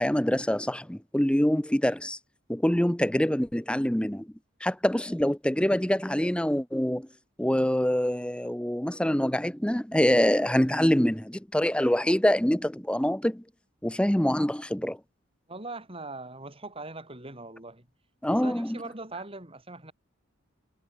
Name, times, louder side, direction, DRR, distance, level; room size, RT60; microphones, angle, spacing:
voice 1, 0.0-2.2 2.5-4.3 4.6-7.1 7.4-13.4 13.8-15.0 18.2-18.8, equal, 5° left, 0.8 m, -25 dB
voice 2, 15.5-17.9 18.3-19.9, right 2 dB, 30° right, 5.1 m, -41 dB
head